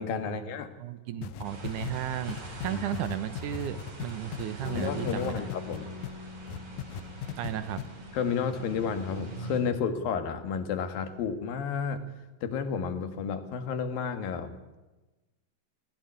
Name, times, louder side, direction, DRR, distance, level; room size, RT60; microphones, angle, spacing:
voice 1, 0.0-0.7 2.7-2.8 4.7-5.9 8.1-12.0 12.4-14.6, left 6 dB, 90° left, 8 dB, 3.4 m, -31 dB
voice 2, 0.8-5.5 7.4-7.8, right 11 dB, 70° right, 12 dB, 2.3 m, -34 dB
sound 1, 1.2-6.1 6.5-7.5 7.8-7.9, left 10 dB, 70° left, 2.2 m, -37 dB
sound 2, 1.4-9.6, right 1 dB, 50° right, 5.7 m, -44 dB
Bass guitar, 4.6-10.9, left 4 dB, 20° left, 2.6 m, -46 dB
20.0 x 16.5 x 9.4 m, 1.1 s
omnidirectional pair, 4.0 m